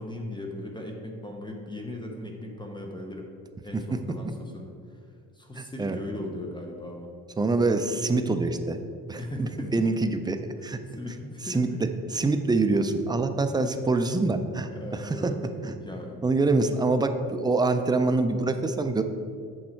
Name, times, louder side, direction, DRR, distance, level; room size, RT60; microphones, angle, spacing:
voice 1, 0.0-3.3 3.6-5.0 5.3-7.1 9.2-9.7 10.6-11.8 14.7-15.4 15.8-16.2, left 1 dB, 15° left, 1 dB, 0.7 m, -38 dB
voice 2, 5.6-6.0 7.4-10.4 10.6-10.8 11.5-11.7 12.1-15.3 15.6-15.7 16.2-19.0, right 3 dB, 10° right, 7 dB, 0.3 m, -25 dB
8.7 x 6.3 x 4.4 m, 2.3 s
cardioid pair, 150°, 36 cm